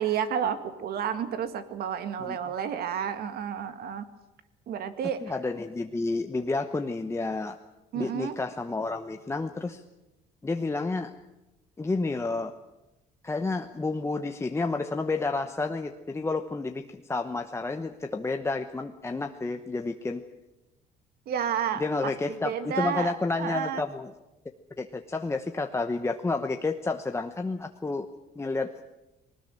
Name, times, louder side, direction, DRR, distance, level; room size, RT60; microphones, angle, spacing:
voice 1, 0.0-4.1 4.7-5.2 7.9-8.3 21.3-22.1 22.5-23.1 23.4-23.8, right 8 dB, 65° right, 10 dB, 2.0 m, -30 dB
voice 2, 5.2-7.6 7.9-9.8 10.4-11.1 11.8-12.5 13.2-20.2 21.8-24.1 24.8-28.1 28.4-28.8, left 3 dB, 15° left, 5 dB, 1.0 m, -30 dB
20.5 x 19.5 x 8.9 m, 0.99 s
cardioid pair, 110°, 17 cm